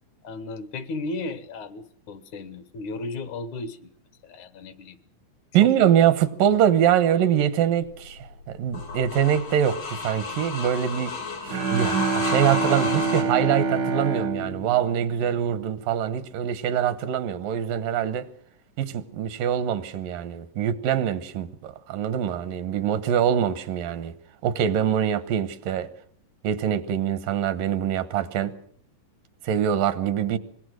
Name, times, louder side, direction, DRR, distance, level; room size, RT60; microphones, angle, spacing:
voice 1, 0.2-3.9 4.2-5.0 5.6-5.7, left 3 dB, 70° left, 2.5 m, -35 dB
voice 2, 5.5-8.2 8.5-11.1 11.4-18.3 18.8-24.1 24.4-25.9 26.4-28.5 29.4-30.4, right 9 dB, 85° right, 2.8 m, -24 dB
sound 1, 7.8-13.2, left 4 dB, 85° left, 5.7 m, -32 dB
Bowed string instrument, 11.5-15.8, right 4 dB, 65° right, 1.1 m, -27 dB
24.5 x 21.0 x 6.3 m
omnidirectional pair, 3.8 m